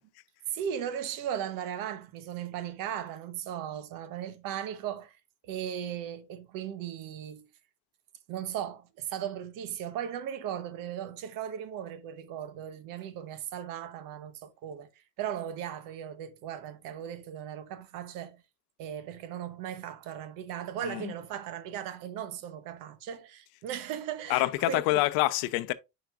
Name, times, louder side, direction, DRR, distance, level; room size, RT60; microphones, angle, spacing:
voice 1, 0.5-5.2 5.4-7.5 8.3-18.4 18.8-25.0, right 9 dB, 60° right, 1.0 m, -37 dB
voice 2, 24.3-25.7, left 18 dB, 70° left, 0.7 m, -26 dB
9.2 x 5.2 x 2.4 m
cardioid pair, 160°, 37 cm